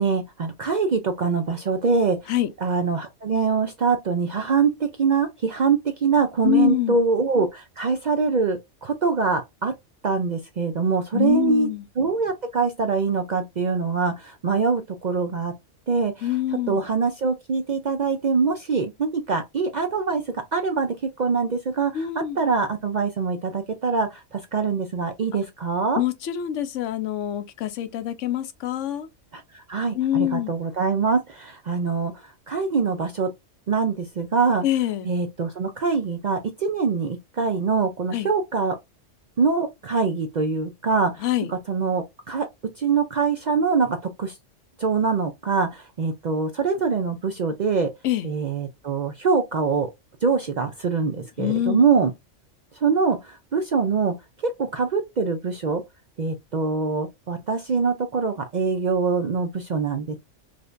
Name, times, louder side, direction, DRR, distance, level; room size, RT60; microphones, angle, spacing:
voice 1, 0.0-2.3 2.6-9.7 10.0-11.7 12.0-15.5 15.9-16.3 16.7-20.2 20.5-26.0 29.3-33.3 33.7-34.6 35.0-38.8 39.4-42.5 42.8-44.3 44.8-47.9 48.2-49.9 50.2-52.1 52.7-54.1 54.4-55.8 56.2-60.2, right 5 dB, 55° right, 0.5 m, -24 dB
voice 2, 6.4-7.0 11.1-11.8 16.2-16.8 21.9-22.4 26.0-29.1 29.9-30.5 34.6-35.1 38.1-38.3 41.2-41.5 48.0-48.3 51.4-51.8, left 12 dB, 85° left, 1.0 m, -25 dB
4.9 x 2.2 x 2.5 m
omnidirectional pair, 1.3 m